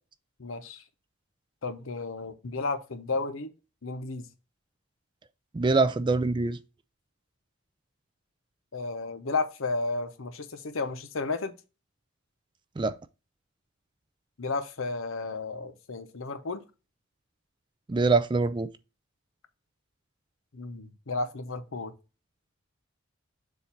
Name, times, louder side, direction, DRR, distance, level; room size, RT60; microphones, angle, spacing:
voice 1, 0.4-0.8 1.6-3.5 3.8-4.3 8.7-11.5 14.4-16.6 20.5-21.9, left 3 dB, 75° left, 0.8 m, -33 dB
voice 2, 5.5-6.6 12.8-12.9 17.9-18.7, right 3 dB, 20° right, 0.3 m, -24 dB
7.1 x 2.6 x 5.7 m
head